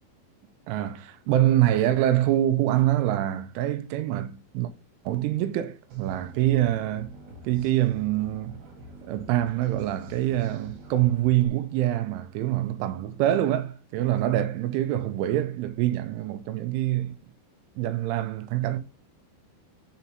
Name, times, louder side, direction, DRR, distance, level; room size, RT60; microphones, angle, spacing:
voice 1, 0.7-4.7 5.1-7.1 7.4-8.6 9.0-17.2 17.8-18.8, right 13 dB, 90° right, 3.2 m, -25 dB
sound 1, 5.9-11.5, right 1 dB, 60° right, 3.5 m, -46 dB
7.2 x 4.3 x 5.4 m
omnidirectional pair, 5.4 m